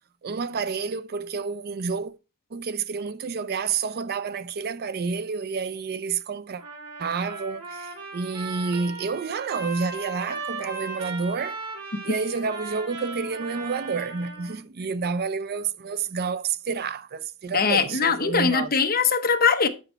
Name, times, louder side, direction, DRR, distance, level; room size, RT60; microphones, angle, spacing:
voice 1, 0.2-2.1 2.5-6.6 7.0-11.6 12.0-18.7, right 5 dB, 45° right, 0.5 m, -29 dB
Trumpet, 6.6-14.6, right 3 dB, 85° right, 3.3 m, -37 dB
voice 2, 17.5-19.7, left 5 dB, 40° left, 0.9 m, -21 dB
8.9 x 6.0 x 4.5 m
head